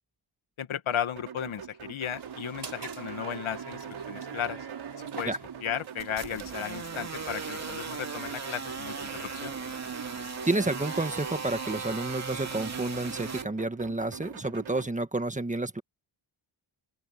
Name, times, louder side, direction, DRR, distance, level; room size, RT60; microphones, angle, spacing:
voice 1, 0.6-4.6 5.2-9.5, left 9 dB, 75° left, 2.0 m, -35 dB
sound 1, 1.2-14.9, right 8 dB, 70° right, 4.5 m, -44 dB
sound 2, 2.1-11.5, right 6 dB, 50° right, 7.0 m, -46 dB
sound 3, 6.0-13.4, right 4 dB, 35° right, 2.7 m, -37 dB
voice 2, 10.4-15.8, right 2 dB, 15° right, 1.5 m, -30 dB
open air
wide cardioid pair, 135°, 49 cm